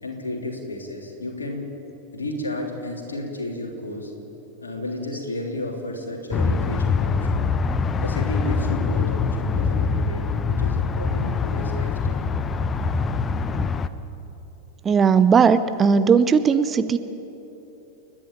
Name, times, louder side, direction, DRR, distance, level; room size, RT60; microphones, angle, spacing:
voice 1, 0.0-1.7 2.1-4.1 4.6-7.4 8.0-12.3, left 1 dB, 75° left, 1 dB, 3.1 m, -32 dB
sound 1, 6.3-13.9, left 5 dB, 20° left, 0.8 m, -24 dB
voice 2, 14.8-17.0, right 6 dB, 20° right, 12 dB, 0.7 m, -17 dB
30.0 x 10.5 x 8.7 m, 3.0 s
figure-of-eight pair, 90°, 0 cm